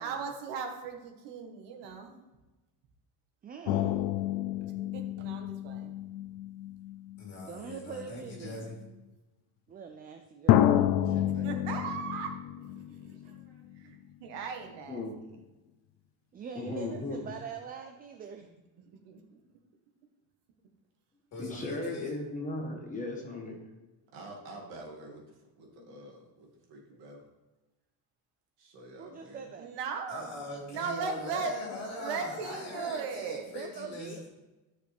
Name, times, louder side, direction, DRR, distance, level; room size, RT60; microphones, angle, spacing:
voice 1, 0.0-2.2 4.9-5.9 11.4-12.3 12.7-13.3 13.8-15.0 19.0-19.2 29.6-30.3 30.7-31.6 32.0-33.4, right 5 dB, 90° right, 4 dB, 1.7 m, -37 dB
voice 2, 3.4-4.0 7.4-8.7 9.7-11.4 16.3-18.5 29.0-29.8 33.5-34.3, right 6 dB, 25° right, 6 dB, 0.3 m, -44 dB
sound 1, 3.7-7.6 8.5-8.6 10.5-13.8 14.1-14.2, left 12 dB, 80° left, 0.6 m, -29 dB
voice 3, 7.2-8.7 21.3-22.2 30.1-34.3, left 2 dB, 40° left, -3 dB, 3.7 m, -41 dB
voice 4, 11.0-11.8 13.1-13.7 24.1-27.2 28.6-29.5, right 1 dB, 60° right, 0 dB, 2.3 m, -50 dB
voice 5, 16.5-17.2 21.4-23.6, left 2 dB, 20° left, 0 dB, 1.3 m, -36 dB
13.5 x 6.4 x 3.5 m, 1.1 s
cardioid pair, 175°, 41 cm